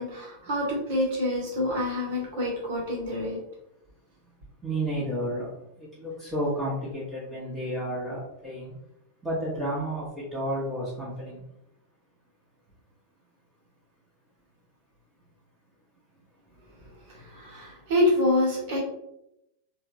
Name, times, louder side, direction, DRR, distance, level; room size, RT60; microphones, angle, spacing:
voice 1, 0.0-3.4 17.1-18.8, left 1 dB, 50° right, -3 dB, 1.3 m, -27 dB
voice 2, 4.6-5.5 5.8-8.7 9.2-11.4, right 1 dB, 15° right, -9 dB, 1.1 m, -31 dB
3.5 x 2.4 x 2.9 m, 0.83 s
figure-of-eight pair, 90°, 0 cm